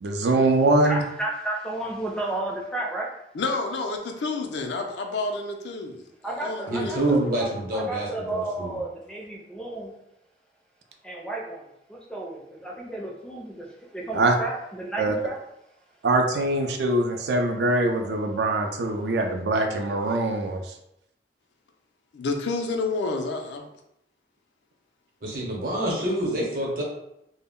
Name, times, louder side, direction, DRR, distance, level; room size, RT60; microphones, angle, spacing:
voice 1, 0.0-1.0 14.1-14.3 15.0-15.1 16.0-20.6, right 2 dB, 70° right, 4 dB, 0.3 m, -23 dB
voice 2, 0.8-3.1 6.2-9.9 11.0-15.4, right 2 dB, 5° left, -2 dB, 0.4 m, -33 dB
voice 3, 3.3-6.0 6.4-7.4 22.1-23.7, left 3 dB, 80° left, 4 dB, 0.4 m, -29 dB
voice 4, 6.7-8.8 25.2-26.8, right 1 dB, 55° right, -2 dB, 0.7 m, -27 dB
2.0 x 2.0 x 3.5 m, 0.81 s
head